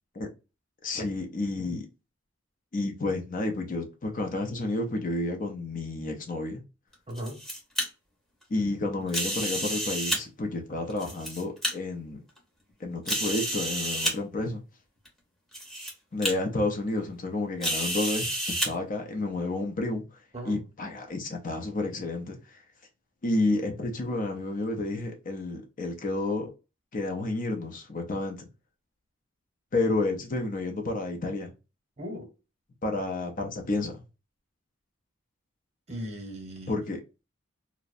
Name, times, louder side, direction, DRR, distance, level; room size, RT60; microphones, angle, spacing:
voice 1, 0.8-1.9 2.7-6.6 8.5-12.2 12.8-14.6 16.1-20.0 20.4-22.6 23.2-26.5 26.9-28.5 29.7-31.5 32.8-34.0 36.7-37.0, left 2 dB, 40° left, 0.5 m, -30 dB
sound 1, 6.9-7.8 9.1-10.2 10.9-11.7 12.4-12.5 13.1-14.1 15.0-15.1 15.5-15.9 16.2-16.3 17.6-18.7, equal, ahead, 0.8 m, -30 dB
voice 2, 7.1-7.4 20.3-20.6 32.0-32.3 35.9-36.7, equal, 30° right, 0.9 m, -37 dB
2.5 x 2.0 x 2.4 m
head